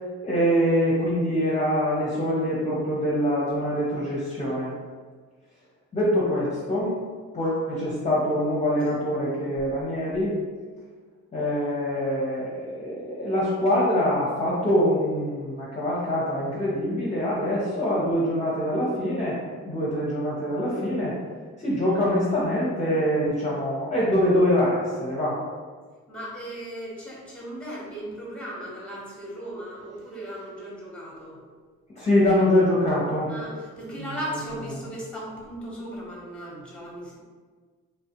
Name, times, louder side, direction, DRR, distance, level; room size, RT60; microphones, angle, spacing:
voice 1, 0.2-4.7 5.9-7.0 7.3-10.3 11.3-19.4 19.7-21.1 21.6-25.4 32.0-33.3 34.0-34.2, equal, 25° left, -7 dB, 0.7 m, -24 dB
voice 2, 26.1-31.4 33.3-37.2, right 1 dB, 5° left, -4 dB, 0.9 m, -37 dB
3.0 x 2.3 x 2.8 m, 1.5 s
cardioid pair, 90°, 30 cm